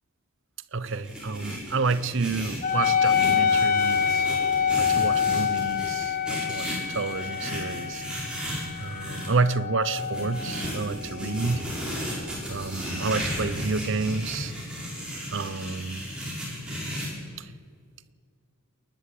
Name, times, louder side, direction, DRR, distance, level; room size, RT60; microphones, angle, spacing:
voice 1, 0.7-4.3 4.8-8.0 8.8-11.7 12.5-14.5 15.3-16.1 17.4-17.5, right 4 dB, 55° right, 0.7 m, -29 dB
sound 1, 0.8-9.3 10.0-17.1, equal, 5° right, 6.0 m, -35 dB
Wind instrument woodwind instrument, 2.6-11.6, left 7 dB, 35° left, 1.5 m, -26 dB
28.0 x 11.5 x 8.5 m
head